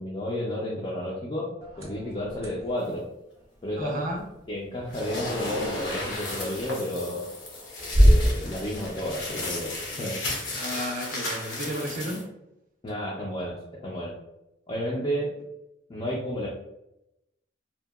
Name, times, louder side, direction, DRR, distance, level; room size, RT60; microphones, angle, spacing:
voice 1, 0.0-1.5 1.8-3.1 3.6-4.1 4.5-7.2 8.0-10.2 12.8-14.2 14.7-15.4 15.9-16.5, equal, 25° left, -4 dB, 0.4 m, -31 dB
sound 1, 1.6-9.9, equal, 15° right, 0.7 m, -28 dB
voice 2, 3.8-4.2 10.5-12.3, equal, 45° right, 2 dB, 0.5 m, -33 dB
sound 2, 4.9-12.2, left 2 dB, 80° left, 0.8 m, -35 dB
2.7 x 2.2 x 2.3 m, 0.86 s
head